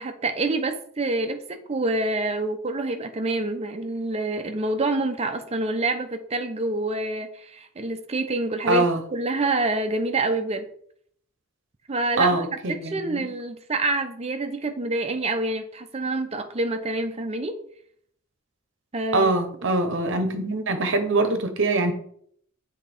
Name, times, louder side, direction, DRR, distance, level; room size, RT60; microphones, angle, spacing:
voice 1, 0.0-8.8 9.1-10.7 11.9-17.5 18.9-19.3, right 2 dB, 30° right, 0.6 m, -27 dB
voice 2, 8.7-9.0 12.2-13.3 19.1-21.9, right 2 dB, 60° right, 0.9 m, -23 dB
7.3 x 3.6 x 4.3 m
head